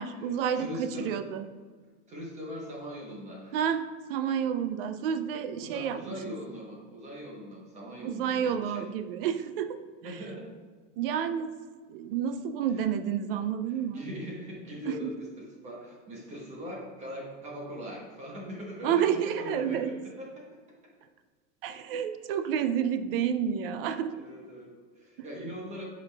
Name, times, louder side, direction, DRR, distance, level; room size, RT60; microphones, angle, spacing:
voice 1, 0.0-1.5 3.5-6.2 8.0-9.8 10.0-10.2 11.0-11.5 11.9-14.0 14.9-15.1 18.8-19.9 21.6-24.1, right 8 dB, 50° right, 10 dB, 0.4 m, -30 dB
voice 2, 0.6-1.1 2.1-3.6 5.6-8.8 10.0-10.5 13.9-20.4 24.1-25.8, equal, 20° right, -2 dB, 1.0 m, -41 dB
8.1 x 5.1 x 2.3 m, 1.5 s
supercardioid pair, 160°, 37 cm